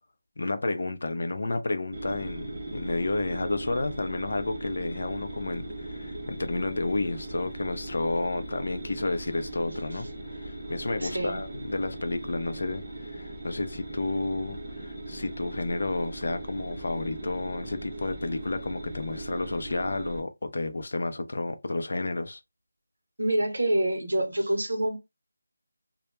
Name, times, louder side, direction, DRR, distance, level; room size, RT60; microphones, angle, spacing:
voice 1, 0.4-2.5 2.7-22.4, left 2 dB, 50° left, 0.4 m, -31 dB
sound 1, 1.9-20.2, right 1 dB, 20° right, 0.5 m, -39 dB
voice 2, 11.0-11.4 23.2-25.0, right 1 dB, 70° right, 0.8 m, -26 dB
2.2 x 2.0 x 2.9 m
figure-of-eight pair, 180°, 0 cm